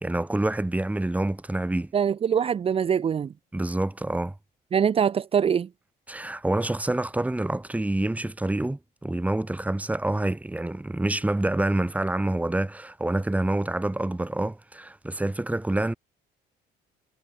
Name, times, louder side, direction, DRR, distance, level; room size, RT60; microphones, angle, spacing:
voice 1, 0.0-1.9 3.5-4.3 6.1-15.9, right 1 dB, 10° right, 2.7 m, -27 dB
voice 2, 1.9-3.3 4.7-5.7, right 7 dB, 35° right, 0.8 m, -23 dB
cardioid pair, 110°, 17 cm